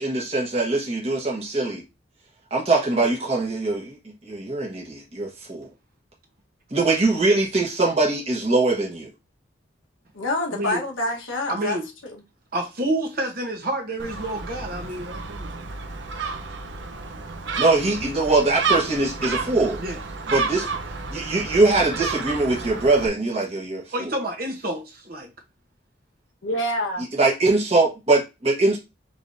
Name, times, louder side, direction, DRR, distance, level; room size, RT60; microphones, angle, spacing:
voice 1, 0.0-1.8 2.5-4.0 4.2-5.7 6.7-9.1 17.6-19.8 20.3-20.7 21.1-24.1 27.1-28.8, right 2 dB, 30° right, 1.2 m, -22 dB
voice 2, 10.1-11.8 12.1-12.2 26.4-27.0, left 1 dB, 90° left, 1.4 m, -26 dB
voice 3, 11.5-11.9 12.5-15.5 19.8-20.0 23.9-25.3, right 1 dB, 50° right, 1.0 m, -29 dB
Gull seagull, 14.0-23.1, right 4 dB, 65° right, 0.7 m, -31 dB
4.7 x 3.5 x 2.7 m
head